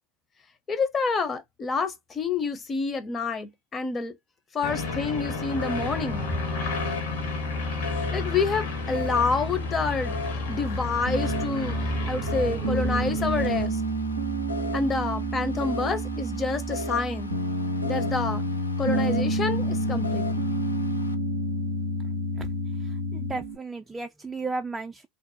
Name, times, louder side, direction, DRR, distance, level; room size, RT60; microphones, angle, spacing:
voice 1, 0.7-4.2 4.5-6.3 8.1-10.2 10.5-11.8 12.1-13.8 14.7-17.4 17.8-18.4 18.8-20.3, left 4 dB, 30° left, 0.6 m, -28 dB
sound 1, 4.6-13.6, left 3 dB, 65° left, 1.1 m, -31 dB
sound 2, 5.1-21.1, left 3 dB, 90° left, 0.3 m, -39 dB
Piano, 11.1-23.6, right 1 dB, 90° right, 0.4 m, -29 dB
voice 2, 22.7-25.1, right 3 dB, 15° right, 0.3 m, -34 dB
2.6 x 2.1 x 2.6 m
figure-of-eight pair, 75°, 0 cm